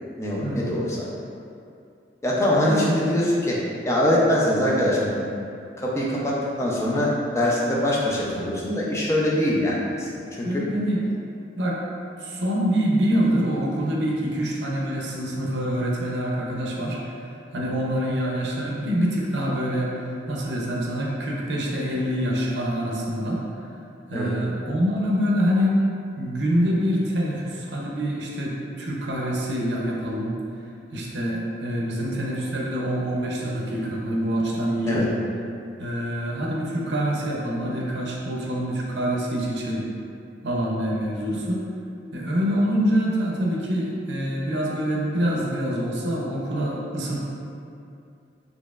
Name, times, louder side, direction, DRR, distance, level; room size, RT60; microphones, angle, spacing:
voice 1, 0.2-1.1 2.2-3.6 3.8-5.1 5.8-10.6 24.1-24.3 31.9-32.0 34.8-35.0 41.3-41.4, left 1 dB, 15° left, -5 dB, 0.5 m, -23 dB
voice 2, 10.4-11.0 11.6-11.8 12.2-17.2 17.5-20.0 20.3-23.4 24.1-25.8 26.2-30.3 30.9-35.0 35.8-39.9 40.4-41.6 42.1-47.2, equal, 70° right, -3 dB, 0.6 m, -25 dB
4.2 x 3.0 x 2.4 m, 2.5 s
head